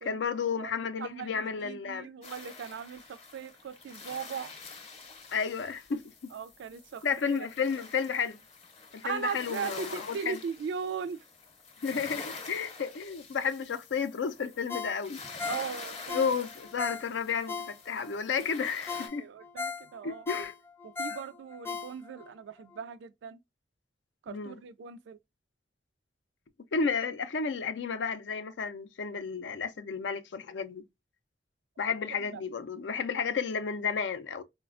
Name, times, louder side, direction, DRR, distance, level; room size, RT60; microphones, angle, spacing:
voice 1, 0.0-2.1 5.3-6.3 7.0-8.4 8.9-10.4 11.8-15.2 16.1-19.3 20.0-20.5 21.1-21.2 24.3-24.6 26.7-30.8 31.8-34.4, left 6 dB, 80° left, 0.4 m, -32 dB
voice 2, 1.0-4.5 6.3-7.5 9.0-11.3 15.5-16.3 19.2-20.3 20.8-23.4 24.2-25.2 32.1-32.4, right 6 dB, 75° right, 0.3 m, -38 dB
sound 1, 2.2-19.1, left 4 dB, 35° left, 0.7 m, -47 dB
Ringtone, 14.7-18.1 18.5-18.6 18.9-22.3 22.7-22.8, left 5 dB, 15° left, 0.3 m, -38 dB
4.0 x 2.1 x 2.4 m
head